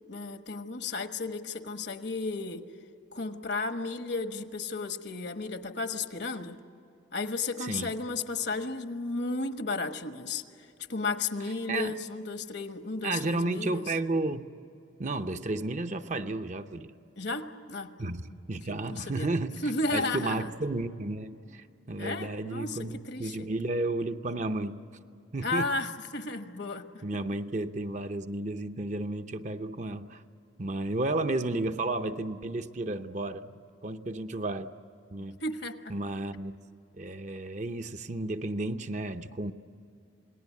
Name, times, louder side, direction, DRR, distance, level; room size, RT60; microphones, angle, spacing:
voice 1, 0.1-2.6 3.1-6.6 7.1-13.9 17.2-19.3 19.6-20.5 22.0-23.5 25.4-27.0 35.4-35.9, left 3 dB, 60° left, 8 dB, 1.3 m, -34 dB
voice 2, 7.6-7.9 11.7-11.9 13.0-14.4 15.0-16.9 18.0-19.5 19.9-24.8 25.3-25.7 27.0-30.2 30.6-33.6 33.8-34.7 35.1-35.4 35.9-36.5 37.0-39.5, right 2 dB, 40° right, 9 dB, 0.7 m, -32 dB
28.0 x 19.5 x 8.4 m, 2.6 s
head